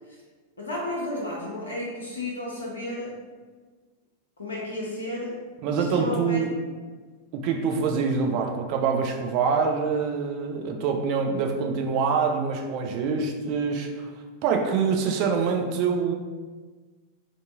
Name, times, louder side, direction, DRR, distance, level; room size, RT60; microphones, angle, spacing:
voice 1, 0.6-3.2 4.4-6.4, left 1 dB, 70° left, -4 dB, 0.5 m, -33 dB
voice 2, 5.6-6.5 7.3-14.1 14.4-16.1, right 5 dB, 45° right, 3 dB, 0.3 m, -25 dB
2.6 x 2.5 x 2.5 m, 1.4 s
figure-of-eight pair, 90°, 0 cm